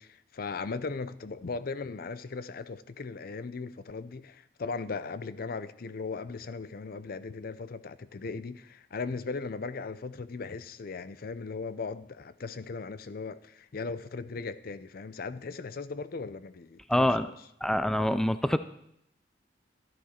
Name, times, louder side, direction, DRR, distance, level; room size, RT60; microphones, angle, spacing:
voice 1, 0.0-17.4, left 4 dB, 55° left, 0.5 m, -38 dB
voice 2, 16.9-17.3 17.6-18.6, left 1 dB, 5° left, 0.3 m, -25 dB
12.5 x 11.0 x 4.4 m
head